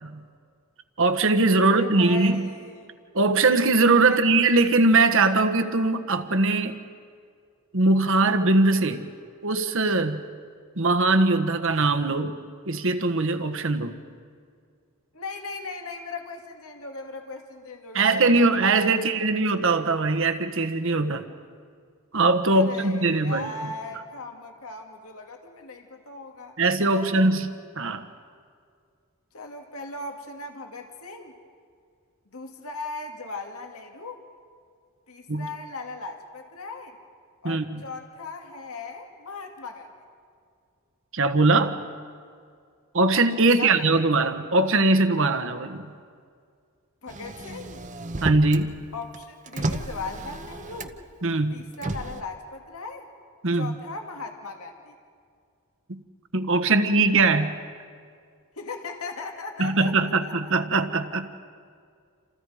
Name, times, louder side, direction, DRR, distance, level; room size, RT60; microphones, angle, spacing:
voice 1, 1.0-2.4 3.1-6.8 7.7-9.1 9.4-10.3 10.8-12.4 12.7-13.9 17.9-21.2 22.1-23.5 26.6-27.5 27.8-28.1 35.3-35.5 37.4-37.8 41.1-41.8 42.9-45.9 48.2-48.8 51.2-51.7 53.4-53.7 55.9-56.0 56.3-57.6 59.6-61.3, right 3 dB, 60° right, 7 dB, 1.4 m, -21 dB
voice 2, 1.6-2.9 4.0-4.2 15.1-19.3 22.5-26.6 26.9-27.3 29.3-31.3 32.3-34.2 35.1-37.0 37.4-39.9 43.4-44.3 47.0-47.8 48.9-51.0 51.5-53.1 53.5-55.0 58.6-60.5, left 3 dB, 75° left, 3 dB, 2.2 m, -38 dB
Motor vehicle (road), 47.1-48.7 49.0-51.1 51.7-52.2, right 1 dB, 35° right, 1.0 m, -32 dB
29.0 x 27.5 x 5.0 m, 2.2 s
head